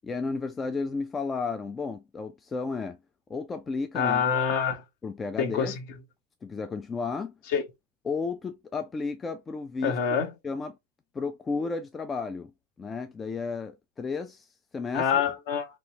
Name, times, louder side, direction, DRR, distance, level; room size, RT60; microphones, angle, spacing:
voice 1, 0.0-3.0 3.3-4.2 5.0-5.8 6.4-7.3 8.0-10.0 10.4-10.8 11.1-12.5 12.8-14.5 14.7-15.2, left 4 dB, 15° left, 0.3 m, -33 dB
voice 2, 3.9-4.8 5.4-5.7 7.5-7.6 9.8-10.3 14.9-15.7, left 7 dB, 45° left, 0.9 m, -25 dB
3.1 x 2.9 x 2.7 m
figure-of-eight pair, 90°, 0 cm